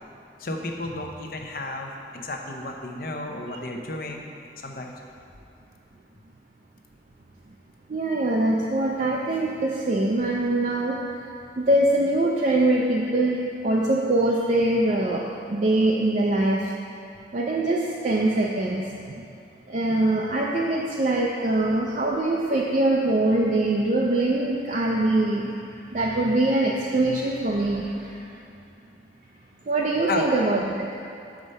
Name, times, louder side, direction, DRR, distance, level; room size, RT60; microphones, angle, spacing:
voice 1, 0.4-4.2 4.6-4.9 21.6-21.7 30.1-30.3, left 2 dB, 55° left, 2 dB, 0.7 m, -32 dB
voice 2, 7.9-11.0 11.6-16.7 17.3-19.2 19.7-25.5 25.9-28.2 29.7-30.9, right 2 dB, 45° right, -2 dB, 0.4 m, -23 dB
6.5 x 4.9 x 5.4 m, 2.7 s
head